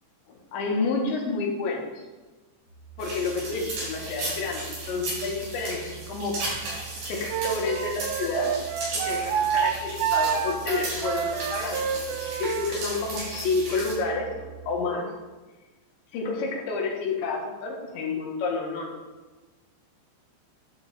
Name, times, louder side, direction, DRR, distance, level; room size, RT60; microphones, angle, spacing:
voice 1, 0.5-1.9 3.0-6.4 7.1-8.6 8.9-15.1 16.1-19.0, left 4 dB, 90° left, -1 dB, 3.8 m, -29 dB
sound 1, 2.7-14.8, right 12 dB, 40° left, 2.5 m, -45 dB
sound 2, 3.0-13.9, right 2 dB, 55° right, 5.4 m, -36 dB
Wind instrument woodwind instrument, 7.3-12.7, right 8 dB, 85° right, 2.1 m, -28 dB
11.5 x 7.1 x 4.0 m, 1.2 s
omnidirectional pair, 5.0 m